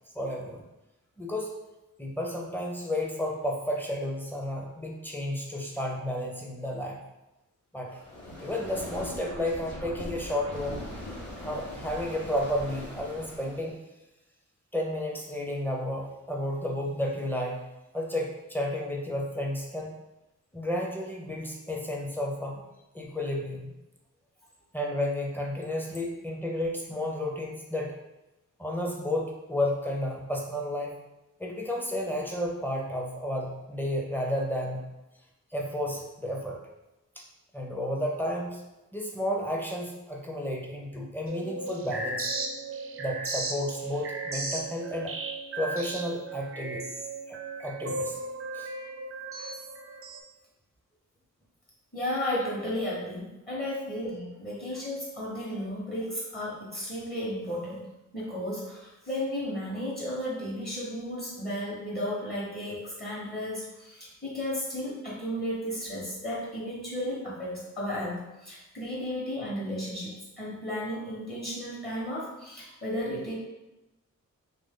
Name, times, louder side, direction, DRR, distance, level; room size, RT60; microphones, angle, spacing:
voice 1, 0.1-0.6 1.2-1.5 2.0-7.0 7.7-8.0 8.4-10.8 11.4-13.8 14.7-17.7 17.9-19.9 20.5-22.6 22.9-23.7 24.7-27.9 28.6-30.9 31.4-34.9 35.5-36.6 37.2-37.3 37.5-38.6 38.9-42.3 43.0-45.1 45.6-46.9 47.3-48.2 48.5-48.7 49.4-49.5 52.3-52.5, left 1 dB, 5° left, -1 dB, 0.6 m, -32 dB
sound 1, 7.9-13.7, left 1 dB, 70° left, 1.1 m, -41 dB
sound 2, 41.3-50.2, right 3 dB, 45° right, 0.4 m, -36 dB
voice 2, 51.9-57.8 58.1-73.3, left 1 dB, 30° left, -6 dB, 1.1 m, -34 dB
3.0 x 2.6 x 3.6 m, 0.98 s
wide cardioid pair, 100°, 32 cm